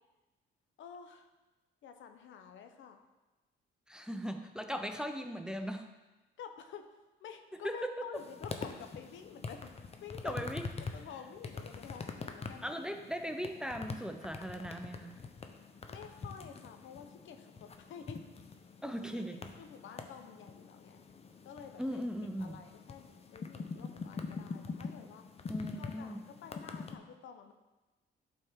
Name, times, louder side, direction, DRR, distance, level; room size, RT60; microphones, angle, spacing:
voice 1, 0.8-1.3 1.8-3.0 6.4-6.9 7.2-10.4 10.9-12.7 15.9-18.2 19.1-19.3 19.6-21.0 21.4-22.0 22.4-25.2 25.7-27.5, left 7 dB, 75° left, 6 dB, 0.8 m, -50 dB
voice 2, 3.9-5.9 7.6-8.1 10.2-10.7 12.6-15.2 18.8-19.5 21.8-22.6 25.5-26.2, equal, 5° right, 6 dB, 0.6 m, -38 dB
sound 1, 8.2-27.0, left 4 dB, 30° left, 0.7 m, -45 dB
11.0 x 4.4 x 3.6 m, 1.1 s
cardioid pair, 90°, 20 cm